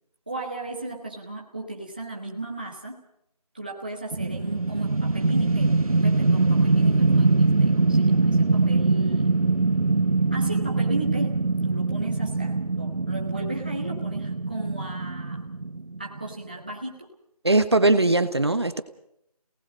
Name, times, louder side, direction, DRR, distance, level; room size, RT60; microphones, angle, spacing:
voice 1, 0.3-3.0 3.5-9.4 10.3-15.4 16.0-17.1, right 2 dB, 15° right, -2 dB, 1.2 m, -36 dB
sound 1, 4.1-16.3, right 3 dB, 60° right, 1.4 m, -23 dB
voice 2, 17.4-18.8, right 2 dB, 40° right, 10 dB, 1.3 m, -20 dB
29.0 x 19.0 x 5.1 m, 0.75 s
figure-of-eight pair, 180°, 20 cm